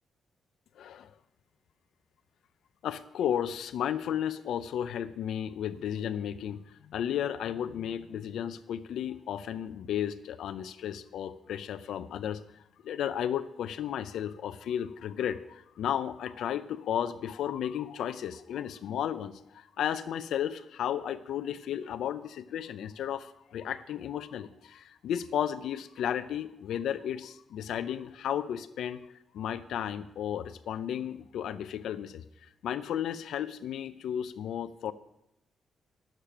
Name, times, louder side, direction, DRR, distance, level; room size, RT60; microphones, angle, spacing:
voice 1, 0.8-1.1 2.8-12.4 12.8-29.0 29.3-34.9, left 9 dB, 80° left, 10 dB, 0.5 m, -34 dB
10.0 x 7.3 x 6.6 m, 0.84 s
wide cardioid pair, 165°, 0 cm